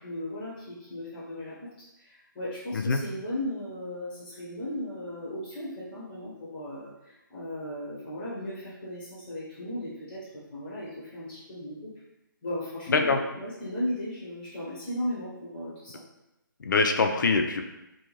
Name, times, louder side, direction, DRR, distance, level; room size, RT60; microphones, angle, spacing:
voice 1, 0.0-11.9 12.4-16.0, left 1 dB, 10° left, -11 dB, 0.6 m, -36 dB
voice 2, 16.6-17.6, left 4 dB, 60° left, 5 dB, 0.4 m, -23 dB
2.5 x 2.2 x 3.0 m, 0.93 s
hypercardioid pair, 170°, 11 cm